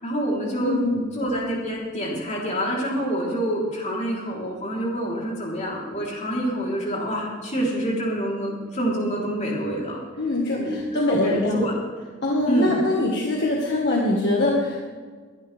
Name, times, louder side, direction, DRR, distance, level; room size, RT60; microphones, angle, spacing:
voice 1, 0.0-0.8 1.1-10.0 10.6-11.7 12.5-12.8, right 1 dB, 35° left, -4 dB, 3.9 m, -27 dB
voice 2, 0.6-1.1 10.2-11.6 12.2-14.8, left 2 dB, 55° left, -2 dB, 1.8 m, -23 dB
22.0 x 11.0 x 3.6 m, 1.5 s
head